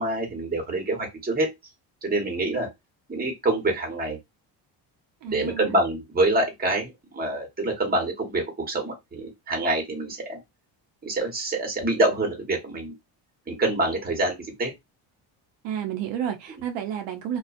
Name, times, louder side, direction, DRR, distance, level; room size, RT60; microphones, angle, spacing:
voice 1, 0.0-1.5 2.0-2.7 3.1-4.2 5.2-10.4 11.0-12.9 13.5-14.7, right 2 dB, 20° right, 1.2 m, -26 dB
voice 2, 5.2-5.7 15.6-17.4, right 9 dB, 75° right, 0.7 m, -31 dB
2.5 x 2.3 x 2.4 m
cardioid pair, 110°, 43 cm